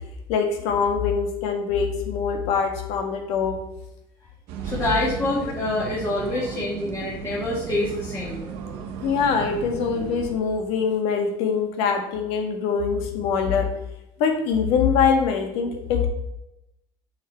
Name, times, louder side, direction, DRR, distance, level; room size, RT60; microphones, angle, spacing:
voice 1, 0.3-3.6 9.0-13.7 14.2-16.1, left 6 dB, 70° left, 4 dB, 1.7 m, -23 dB
sound 1, 4.5-10.3, right 5 dB, 70° right, 1.3 m, -34 dB
voice 2, 4.6-8.5, left 2 dB, 25° left, -6 dB, 2.3 m, -26 dB
7.3 x 6.7 x 4.3 m, 0.87 s
cardioid pair, 140°, 11 cm